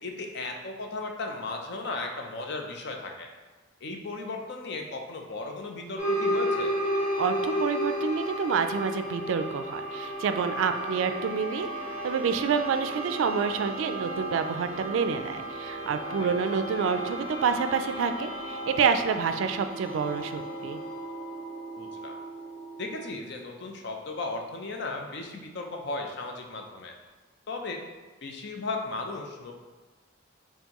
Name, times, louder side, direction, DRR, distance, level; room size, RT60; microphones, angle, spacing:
voice 1, 0.0-3.3 3.8-6.7 16.2-16.3 21.8-22.2 22.8-26.9 27.5-27.8 28.2-29.5, left 3 dB, 60° left, 2 dB, 0.5 m, -36 dB
sound 1, 6.0-23.1, right 1 dB, 10° right, 1.1 m, -33 dB
voice 2, 7.2-11.7 12.0-20.8, right 6 dB, 85° right, 9 dB, 0.3 m, -28 dB
4.4 x 3.6 x 2.9 m, 1.3 s
head